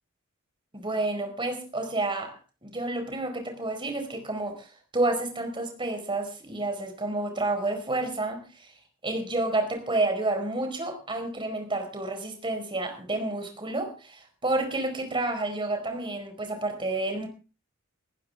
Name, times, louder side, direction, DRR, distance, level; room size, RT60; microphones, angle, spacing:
voice 1, 0.7-8.7 9.0-17.3, right 2 dB, 25° right, 5 dB, 4.8 m, -30 dB
19.0 x 15.0 x 3.6 m, 0.34 s
head